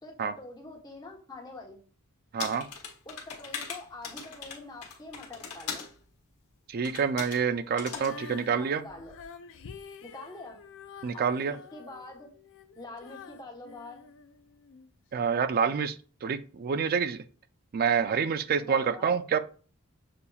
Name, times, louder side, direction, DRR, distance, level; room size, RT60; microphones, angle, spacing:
voice 1, 0.0-1.8 3.0-5.8 8.5-9.1 10.0-10.6 11.1-12.3 12.7-14.0 18.7-19.1, left 2 dB, 20° left, -1 dB, 1.0 m, -45 dB
voice 2, 2.3-2.6 6.7-8.8 11.0-11.5 15.1-15.9 16.2-17.2 17.7-19.4, right 6 dB, 45° right, 13 dB, 0.3 m, -27 dB
sound 1, 2.4-5.9 6.8-7.4 7.8-8.1, left 6 dB, 85° left, 1.1 m, -39 dB
Female singing, 7.8-14.9 15.5-15.6, left 5 dB, 60° left, 0.4 m, -48 dB
6.8 x 2.9 x 2.3 m, 0.40 s
head